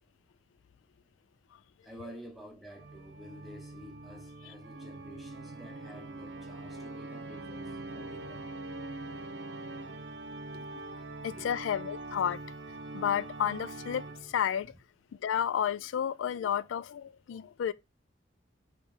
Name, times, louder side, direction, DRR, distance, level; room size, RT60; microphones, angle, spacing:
voice 1, 1.8-8.5 11.3-11.6 14.7-14.8, equal, ahead, 0.8 m, -50 dB
Organ, 2.7-14.5, right 2 dB, 65° right, 0.7 m, -43 dB
voice 2, 11.2-12.4 12.9-14.7 15.2-17.7, left 9 dB, 80° left, 0.3 m, -31 dB
3.3 x 3.0 x 4.7 m
head